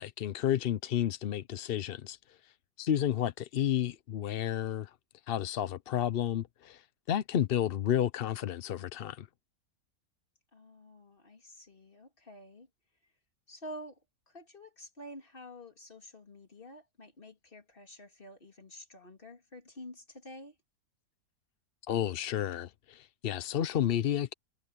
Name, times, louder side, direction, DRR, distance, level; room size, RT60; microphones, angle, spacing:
voice 1, 0.0-2.5 2.8-4.9 5.3-9.3 21.9-24.3, left 10 dB, 55° left, 0.6 m, -31 dB
voice 2, 10.5-12.7 13.5-20.6, equal, 35° left, 3.1 m, -49 dB
omnidirectional pair, 1.6 m